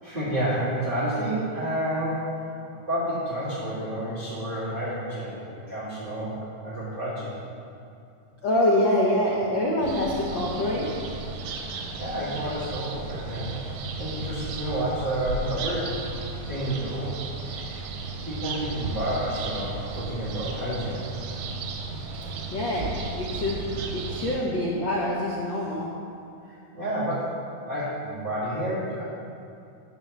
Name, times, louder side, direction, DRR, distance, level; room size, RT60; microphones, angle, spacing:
voice 1, 0.0-2.3 2.7-7.4 12.0-16.2 16.5-17.9 18.2-21.1 26.4-27.4 27.6-29.0, right 1 dB, 20° right, -13 dB, 2.0 m, -30 dB
voice 2, 8.4-10.8 22.5-22.9 23.2-23.6 23.9-25.9, left 1 dB, 90° left, -4 dB, 1.0 m, -25 dB
sound 1, 9.8-24.4, right 3 dB, 90° right, 2.2 m, -34 dB
10.5 x 4.1 x 7.2 m, 2.5 s
omnidirectional pair, 3.4 m